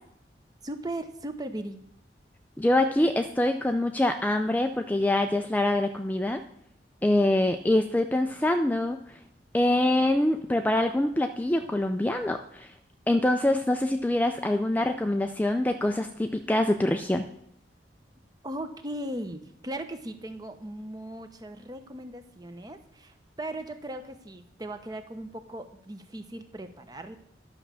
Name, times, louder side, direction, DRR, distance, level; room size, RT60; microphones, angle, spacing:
voice 1, 0.6-1.8 18.4-27.2, right 1 dB, 20° right, 8 dB, 0.8 m, -38 dB
voice 2, 2.6-6.4 7.0-9.0 9.5-12.7 13.1-17.3, left 1 dB, 10° left, 6 dB, 0.4 m, -25 dB
11.0 x 6.1 x 6.8 m, 0.73 s
head